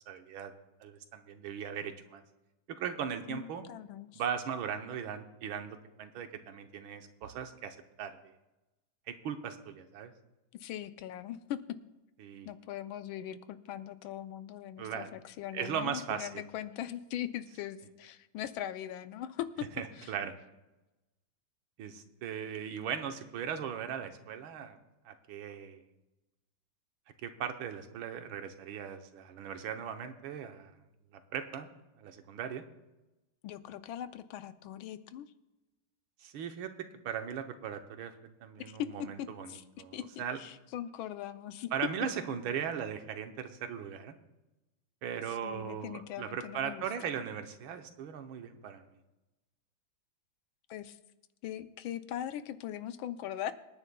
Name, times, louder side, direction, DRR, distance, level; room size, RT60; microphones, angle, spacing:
voice 1, 0.1-0.5 0.8-2.2 2.7-3.6 4.1-8.1 9.1-10.1 12.2-12.5 14.8-15.1 15.5-16.4 19.8-20.3 21.8-24.8 25.0-25.8 27.2-30.7 31.1-31.7 32.0-32.6 36.2-36.7 37.0-38.1 38.4-39.5 39.8-40.4 41.7-44.2 45.0-48.8, right 8 dB, 90° right, 6 dB, 1.7 m, -38 dB
voice 2, 3.3-4.2 10.5-11.6 12.4-19.7 20.0-20.1 33.4-35.3 38.7-39.6 39.9-41.7 45.3-46.8 50.7-51.0 51.4-53.5, left 11 dB, 85° left, 11 dB, 1.5 m, -40 dB
25.5 x 9.9 x 2.3 m, 1.0 s
omnidirectional pair, 2.2 m